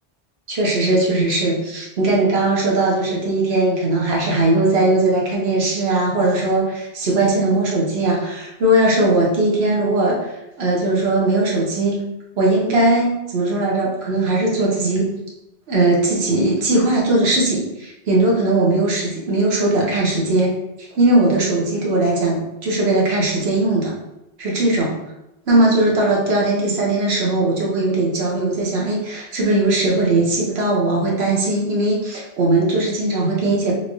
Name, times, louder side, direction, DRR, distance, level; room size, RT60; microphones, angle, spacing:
voice 1, 0.5-10.3 10.6-12.0 12.4-15.1 15.7-20.5 20.8-23.9 24.4-24.9 25.5-33.7, right 2 dB, 75° right, -3 dB, 1.1 m, -19 dB
3.4 x 3.1 x 2.5 m, 0.91 s
omnidirectional pair, 1.1 m